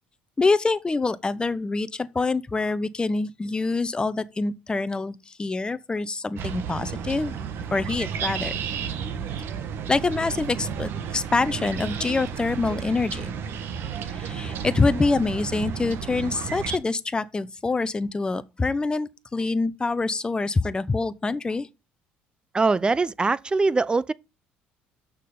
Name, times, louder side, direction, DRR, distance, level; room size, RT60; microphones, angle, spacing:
voice 1, 0.4-7.4 7.7-8.5 9.9-13.3 14.1-21.7, left 3 dB, 20° left, 0.8 m, -25 dB
sound 1, 6.4-16.8, right 7 dB, 60° right, 1.3 m, -32 dB
voice 2, 22.5-24.1, right 3 dB, 20° right, 0.5 m, -22 dB
6.5 x 5.6 x 6.6 m
supercardioid pair, 85°, 4 cm